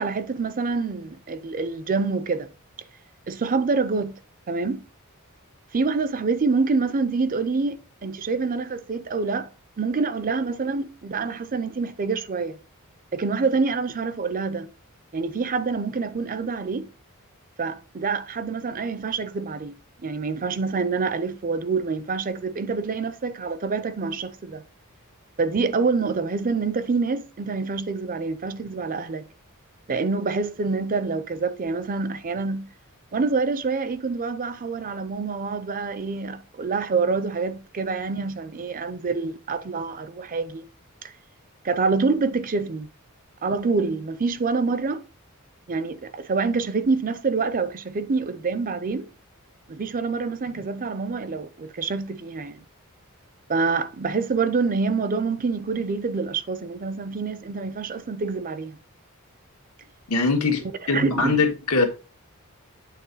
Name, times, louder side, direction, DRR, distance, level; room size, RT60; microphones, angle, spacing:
voice 1, 0.0-2.5 3.3-4.2 4.5-4.8 5.7-9.5 9.8-12.6 13.1-14.7 15.1-16.9 17.6-19.7 20.0-24.6 25.4-29.3 29.9-32.7 33.1-40.6 41.0-41.1 41.6-42.9 43.4-45.0 45.7-49.1 49.7-52.6 53.5-58.8 60.9-61.4, right 4 dB, 40° right, 0.5 m, -26 dB
voice 2, 60.1-60.6 60.9-61.9, left 4 dB, 75° left, 1.6 m, -21 dB
8.4 x 3.5 x 3.9 m
head